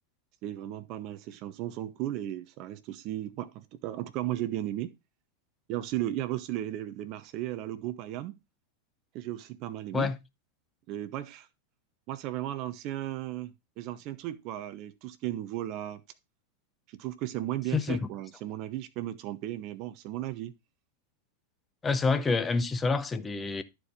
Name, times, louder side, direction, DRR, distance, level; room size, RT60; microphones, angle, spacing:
voice 1, 0.4-4.9 5.7-8.4 9.1-10.1 10.9-11.5 12.1-16.0 16.9-20.5, right 13 dB, 40° right, 0.7 m, -35 dB
voice 2, 17.7-18.1 21.8-23.6, left 4 dB, 15° left, 0.8 m, -27 dB
12.0 x 4.5 x 3.8 m
figure-of-eight pair, 90°, 0 cm